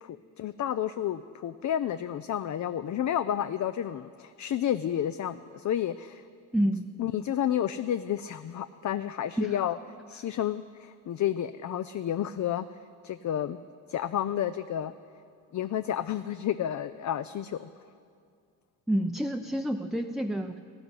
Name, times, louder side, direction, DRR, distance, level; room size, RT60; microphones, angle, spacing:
voice 1, 0.0-6.2 7.0-9.8 10.1-12.7 13.0-13.6 13.9-14.9 15.5-17.7, left 10 dB, 50° left, 12 dB, 0.5 m, -31 dB
voice 2, 6.5-6.9 9.4-9.5 18.9-20.6, right 1 dB, ahead, 5 dB, 0.6 m, -28 dB
14.0 x 7.9 x 9.7 m, 2.3 s
supercardioid pair, 55°, 39 cm